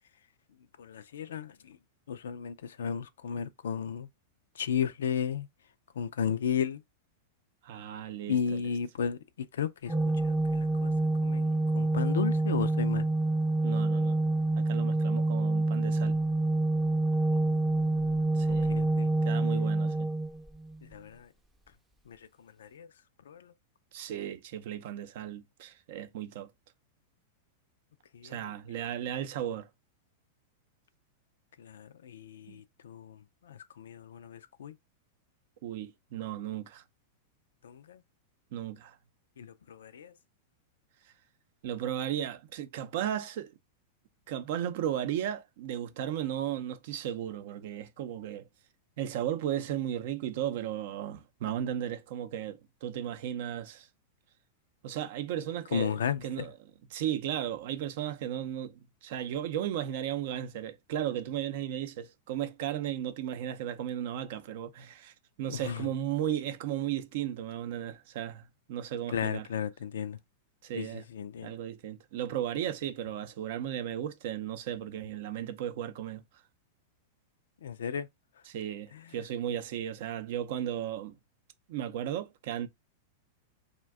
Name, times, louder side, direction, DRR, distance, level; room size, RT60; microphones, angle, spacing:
voice 1, 0.8-1.8 2.1-4.1 4.5-5.5 5.9-6.8 8.3-9.9 10.2-10.9 11.2-13.1 17.3-19.1 20.8-21.3 22.1-22.9 23.3-23.5 28.1-28.8 31.6-34.7 37.6-38.0 39.4-40.1 55.7-56.5 65.5-65.9 69.1-70.2 70.8-71.5 77.6-78.1 78.9-79.2, left 7 dB, 80° left, 0.3 m, -35 dB
voice 2, 7.6-8.6 13.6-14.2 14.6-16.2 18.3-18.7 19.2-20.1 23.9-26.5 28.2-29.7 32.5-32.6 35.6-36.8 38.5-39.0 41.6-43.6 44.3-48.4 49.0-53.9 54.8-56.5 56.9-69.5 70.6-71.1 71.4-76.2 78.5-81.2 81.7-82.7, right 10 dB, 60° right, 0.4 m, -35 dB
Organ, 9.9-20.8, right 2 dB, 5° right, 0.5 m, -27 dB
2.5 x 2.1 x 3.4 m
hypercardioid pair, 105°, 0 cm